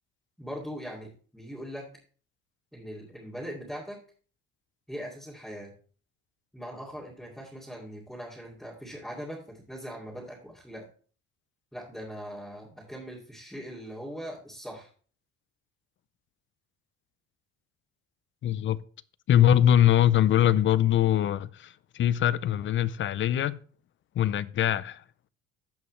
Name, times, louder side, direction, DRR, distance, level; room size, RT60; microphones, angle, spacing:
voice 1, 0.4-1.9 2.7-4.0 4.9-5.7 6.5-10.8 11.7-14.9, equal, ahead, 2.4 m, -40 dB
voice 2, 18.4-18.8 19.3-23.6 24.2-25.0, left 11 dB, 40° left, 0.4 m, -22 dB
15.5 x 5.5 x 3.2 m
cardioid pair, 130°, 31 cm